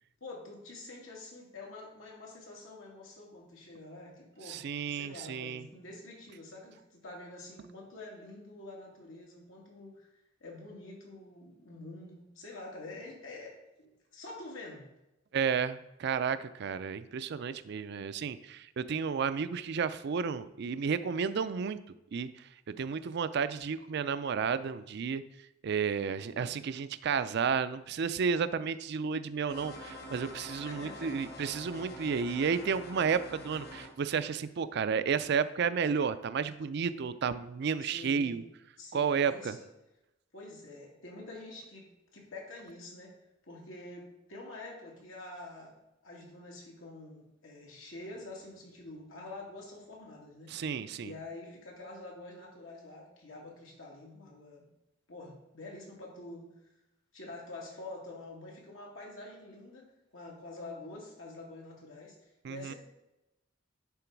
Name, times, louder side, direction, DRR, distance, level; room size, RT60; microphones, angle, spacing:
voice 1, 0.2-10.1 10.4-14.9 26.3-26.4 30.7-31.1 37.8-38.4 38.8-39.6 40.3-43.1 43.4-45.8 46.0-50.5 51.0-54.7 55.1-56.5 57.1-59.9 60.1-62.2 62.5-62.8, left 2 dB, 90° left, -2 dB, 2.3 m, -47 dB
voice 2, 4.5-5.7 15.3-21.8 22.1-25.2 25.6-38.4 38.9-39.6 50.5-51.1 62.4-62.7, right 6 dB, 60° right, 13 dB, 0.4 m, -32 dB
sound 1, 29.5-33.9, left 1 dB, 55° left, 1.2 m, -46 dB
10.5 x 3.9 x 4.6 m, 0.92 s
head